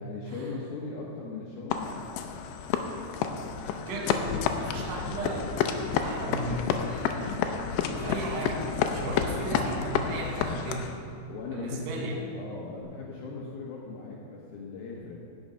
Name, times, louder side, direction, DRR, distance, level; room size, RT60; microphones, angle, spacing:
voice 1, 0.0-2.2 11.3-15.2, left 4 dB, 75° left, -3 dB, 2.3 m, -39 dB
sound 1, 1.7-11.0, left 7 dB, 90° left, 2.4 m, -30 dB
voice 2, 3.9-5.6 6.0-7.7 8.0-11.0 11.5-12.2, right 2 dB, 80° right, 0 dB, 3.9 m, -35 dB
sound 2, 4.8-12.8, left 1 dB, 50° left, 0.6 m, -48 dB
15.5 x 6.3 x 5.5 m, 2.4 s
omnidirectional pair, 5.4 m